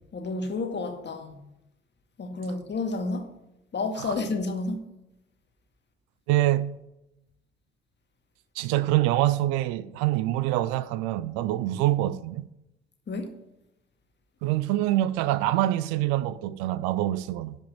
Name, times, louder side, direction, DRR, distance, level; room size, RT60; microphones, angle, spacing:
voice 1, 0.1-1.4 2.2-3.3 3.7-4.8 13.1-13.3, left 3 dB, 35° left, 1.8 m, -30 dB
voice 2, 6.3-6.7 8.6-12.5 14.4-17.6, right 14 dB, 65° right, 0.6 m, -25 dB
12.0 x 5.4 x 7.3 m
figure-of-eight pair, 45°, 30 cm